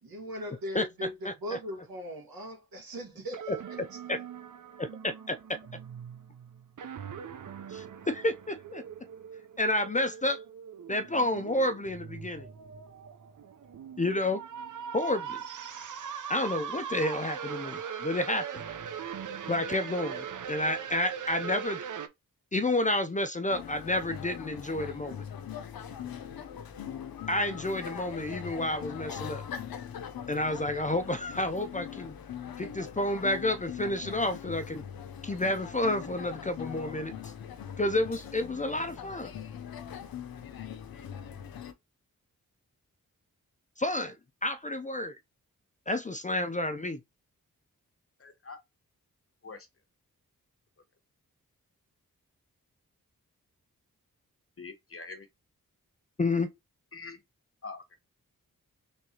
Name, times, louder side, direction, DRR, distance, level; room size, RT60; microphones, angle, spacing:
voice 1, 0.0-3.8, equal, 85° right, 1.8 m, -39 dB
sound 1, 3.3-22.1, right 7 dB, 60° right, 0.6 m, -41 dB
voice 2, 4.8-5.4 7.7-8.8 9.6-10.4 10.9-12.5 14.0-14.4 14.9-15.4 16.3-18.6 19.5-21.8 22.5-25.2 27.3-29.4 30.3-32.1 32.6-34.8 35.2-37.3 37.8-39.3 43.8-44.2 44.4-45.1 45.9-47.0 56.2-56.5, left 1 dB, 20° left, 0.4 m, -30 dB
sound 2, 23.5-41.7, left 8 dB, 85° left, 0.6 m, -41 dB
voice 3, 48.2-48.6 49.4-49.7 54.6-55.3 56.9-57.2 57.6-57.8, left 4 dB, 40° left, 1.0 m, -44 dB
3.5 x 3.2 x 2.8 m
cardioid pair, 50°, 35 cm